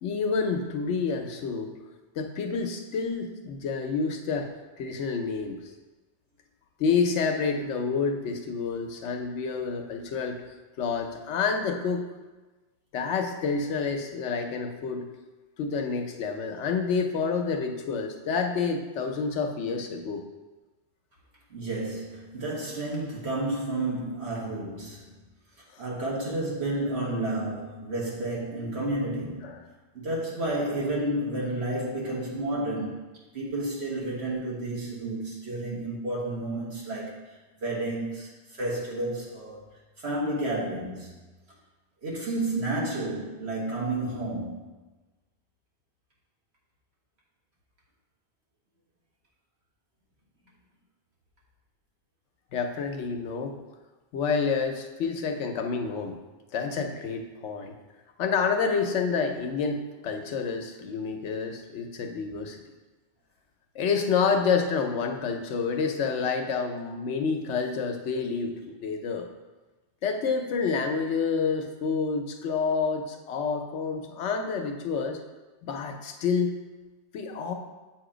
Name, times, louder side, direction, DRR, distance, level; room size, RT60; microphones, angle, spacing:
voice 1, 0.0-1.8 2.2-4.5 4.8-5.6 6.8-10.4 10.8-12.1 12.9-15.1 15.6-20.2 29.4-29.6 52.5-53.5 54.1-56.2 56.5-57.7 58.2-62.6 63.7-69.3 70.0-75.2 75.6-76.6 77.1-77.5, left 5 dB, 85° left, 4 dB, 1.0 m, -28 dB
voice 2, 21.5-25.2 25.8-29.5 29.9-39.6 40.0-41.3 42.0-44.6, right 2 dB, 65° right, -4 dB, 1.7 m, -31 dB
7.6 x 2.9 x 5.0 m, 1.2 s
omnidirectional pair, 1.2 m